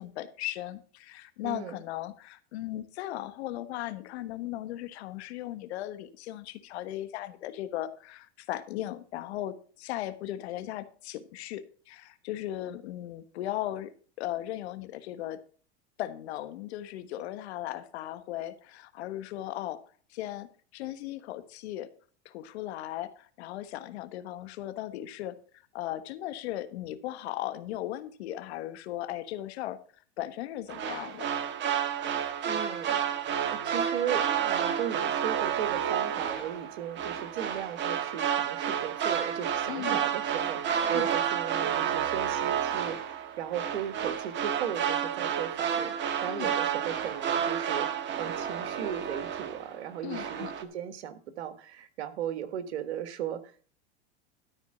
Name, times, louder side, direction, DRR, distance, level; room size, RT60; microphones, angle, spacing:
voice 1, 0.0-13.9 14.2-15.4 16.0-19.8 20.1-20.5 20.7-21.9 22.2-25.4 25.7-29.8 30.2-31.3 39.7-40.0 40.9-41.1 46.3-46.5 50.0-50.5, left 14 dB, 75° left, 1.3 m, -37 dB
voice 2, 1.4-1.8 32.4-33.0 33.5-53.7, right 9 dB, 80° right, 1.4 m, -37 dB
sound 1, 30.7-49.8 50.1-50.6, right 8 dB, 35° right, 1.3 m, -30 dB
12.5 x 4.5 x 6.5 m
supercardioid pair, 115°, 33 cm